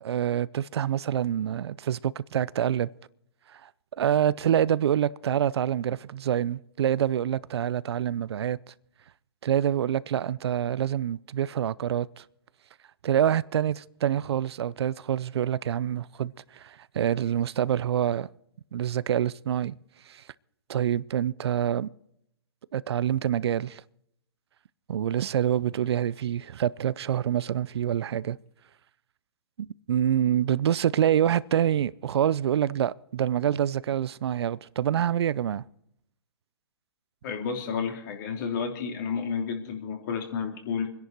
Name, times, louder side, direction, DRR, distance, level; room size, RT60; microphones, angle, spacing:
voice 1, 0.0-2.9 3.5-3.7 4.0-8.7 9.4-12.2 13.0-18.3 18.7-19.8 20.1-20.2 20.7-21.9 22.7-23.8 24.9-28.4 29.6-35.6, right 10 dB, 65° right, 0.5 m, -26 dB
voice 2, 37.2-40.9, left 6 dB, 45° left, 3.0 m, -31 dB
25.0 x 10.5 x 4.6 m
hypercardioid pair, 140°, 15 cm